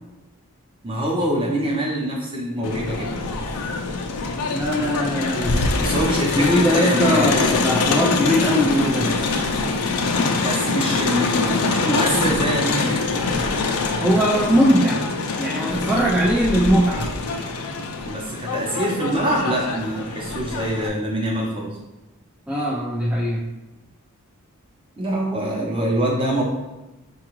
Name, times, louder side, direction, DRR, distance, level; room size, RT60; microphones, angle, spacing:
voice 1, 0.8-3.1 5.8-7.3 10.4-13.0 18.1-21.8 25.0-26.4, right 1 dB, 25° right, -3 dB, 0.7 m, -24 dB
Crowd, 2.6-20.9, left 3 dB, 85° left, 0.5 m, -24 dB
voice 2, 4.5-5.7 6.4-9.1 14.0-15.0 15.4-17.1 22.5-23.5, equal, 5° right, -6 dB, 0.3 m, -20 dB
4.6 x 2.3 x 3.0 m, 1.1 s
head